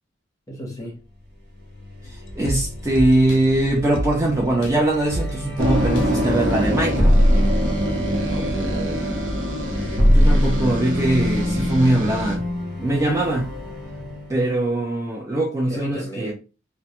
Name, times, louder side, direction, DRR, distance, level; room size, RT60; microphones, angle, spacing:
voice 1, 0.5-1.0 8.2-9.1 15.7-16.3, equal, 20° left, 0.8 m, -33 dB
sound 1, 1.5-14.5, equal, 50° right, 1.2 m, -32 dB
sound 2, 2.0-7.2 7.6-7.7, equal, 75° left, 0.5 m, -32 dB
voice 2, 2.4-7.2 10.1-12.4 12.8-13.5 14.3-16.3, right 1 dB, 15° right, 0.4 m, -21 dB
sound 3, 5.6-12.4, equal, 80° right, 0.6 m, -20 dB
2.1 x 2.0 x 2.8 m
head